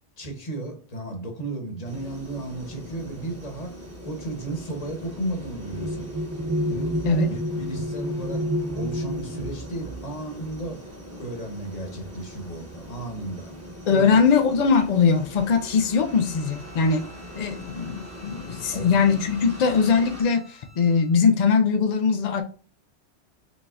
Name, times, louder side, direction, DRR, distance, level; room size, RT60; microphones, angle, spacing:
voice 1, 0.2-6.1 6.7-8.5 8.7-10.8 11.2-13.5 13.9-14.2 18.7-18.9, right 2 dB, 35° left, 3 dB, 1.0 m, -34 dB
sound 1, 1.8-20.2, equal, 15° right, 1.0 m, -42 dB
sound 2, 3.0-11.9 12.9-13.0 13.4-13.9, equal, 30° right, 0.4 m, -32 dB
voice 2, 13.9-17.0 17.3-22.4, left 5 dB, 70° left, 6 dB, 0.4 m, -21 dB
Bowed string instrument, 16.0-21.2, equal, 80° right, 2.1 m, -51 dB
5.1 x 3.5 x 2.4 m, 0.39 s
omnidirectional pair, 1.2 m